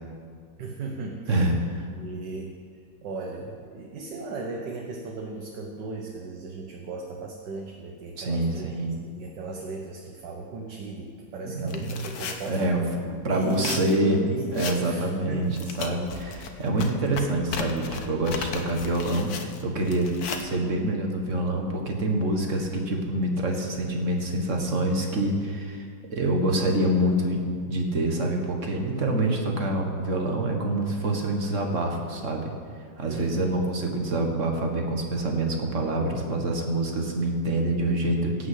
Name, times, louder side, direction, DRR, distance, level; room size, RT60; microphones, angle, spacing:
voice 1, 0.6-1.4 1.9-2.5 3.0-8.7 9.0-13.0 13.3-15.6 33.1-33.6, right 3 dB, 70° right, 1 dB, 1.7 m, -36 dB
voice 2, 1.3-1.9 8.2-9.0 11.4-12.0 12.5-14.2 14.5-15.5 15.8-25.9 26.1-32.5 33.0-38.5, right 1 dB, 40° right, 2 dB, 1.8 m, -26 dB
sound 1, 11.7-12.6 13.4-14.0 14.5-15.0 15.4-20.4, left 5 dB, 60° left, 1.4 m, -35 dB
17.0 x 6.2 x 8.3 m, 2.1 s
omnidirectional pair, 2.0 m